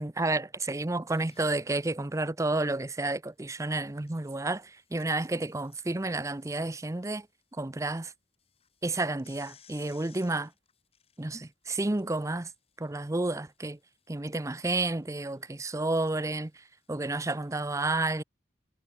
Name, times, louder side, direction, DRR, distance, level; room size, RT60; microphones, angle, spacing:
voice 1, 0.0-7.3 7.6-8.1 8.8-10.5 11.2-12.5 12.8-13.8 14.1-16.5 16.9-18.2, right 2 dB, 15° right, 0.6 m, -31 dB
sound 1, 0.9-1.9 3.8-7.4 7.8-7.9 8.3-17.5, left 8 dB, 35° left, 6.3 m, -63 dB
head